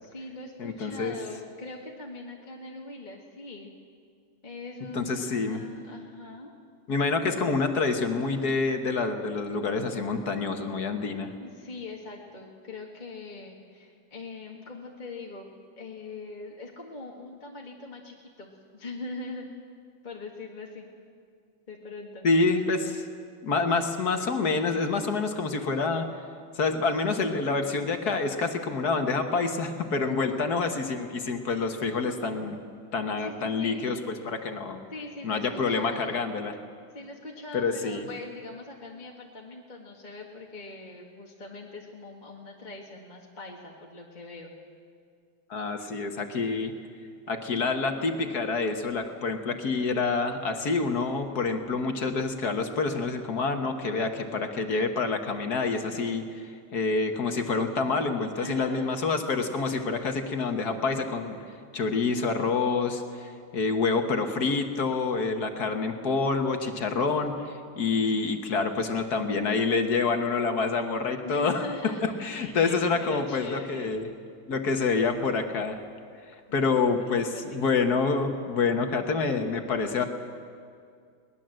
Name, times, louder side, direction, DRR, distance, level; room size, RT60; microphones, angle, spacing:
voice 1, 0.0-3.8 4.4-6.5 11.4-15.5 15.8-19.6 20.0-20.9 21.7-22.6 30.1-30.5 33.2-33.8 34.9-36.2 36.9-44.5 58.4-58.9 71.2-74.0 76.5-77.7, left 3 dB, 25° left, -1 dB, 1.8 m, -41 dB
voice 2, 0.6-1.1 4.9-5.6 6.9-11.3 22.2-23.0 23.4-26.1 26.6-32.6 32.9-34.8 35.2-36.5 37.5-38.1 45.5-46.7 47.3-56.4 56.7-61.4 61.7-71.6 72.0-74.1 74.5-75.8 76.5-80.0, left 4 dB, 55° left, 6 dB, 1.8 m, -27 dB
22.5 x 19.0 x 7.7 m, 2.2 s
omnidirectional pair, 2.2 m